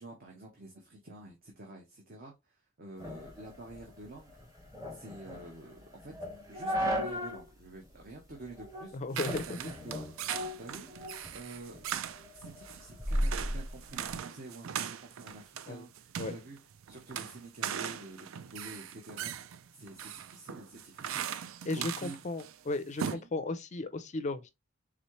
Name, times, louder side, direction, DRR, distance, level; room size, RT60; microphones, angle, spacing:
voice 1, 0.0-4.4 4.9-6.1 6.5-10.0 10.6-11.9 12.3-16.6 16.9-19.4 19.7-22.2 23.0-23.3, right 2 dB, 45° right, 1.0 m, -48 dB
sound 1, 3.0-7.5 7.8-7.9 8.5-8.9 9.3-11.3 11.7-14.2, equal, 15° right, 1.2 m, -36 dB
voice 2, 8.9-9.6 15.7-15.9 16.2-16.3 21.7-24.5, left 2 dB, 35° left, 0.4 m, -35 dB
sound 2, 9.1-22.6 22.8-23.2, right 9 dB, 75° right, 0.4 m, -40 dB
4.1 x 3.7 x 3.1 m
head